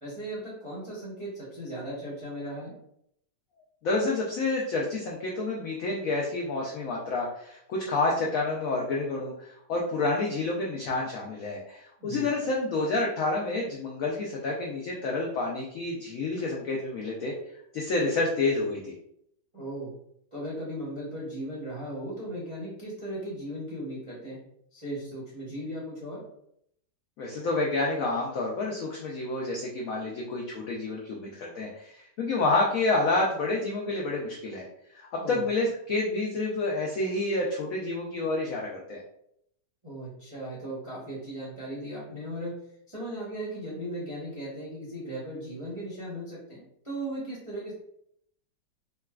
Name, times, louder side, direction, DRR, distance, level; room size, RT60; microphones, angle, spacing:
voice 1, 0.0-2.7 12.0-12.3 19.5-19.9 20.3-24.4 24.7-26.3 35.2-35.4 39.8-42.6 42.9-47.7, right 1 dB, 35° right, -8 dB, 0.5 m, -37 dB
voice 2, 3.8-17.3 17.7-18.9 27.2-34.7 34.9-39.0, left 2 dB, 85° left, -2 dB, 0.7 m, -29 dB
3.8 x 2.2 x 2.3 m, 0.73 s
omnidirectional pair, 2.0 m